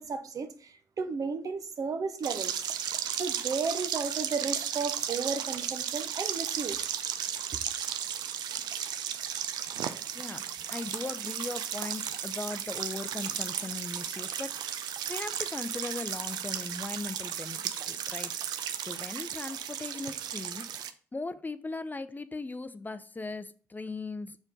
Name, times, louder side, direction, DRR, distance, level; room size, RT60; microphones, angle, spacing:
voice 1, 0.0-2.7 3.1-6.9, right 5 dB, 55° right, 0.8 m, -34 dB
sound 1, 2.2-20.9, right 9 dB, 70° right, 0.5 m, -35 dB
voice 2, 10.1-18.5 18.8-20.7 21.1-24.4, left 3 dB, 25° left, 0.5 m, -39 dB
5.8 x 4.4 x 3.7 m
hypercardioid pair, 40°, 7 cm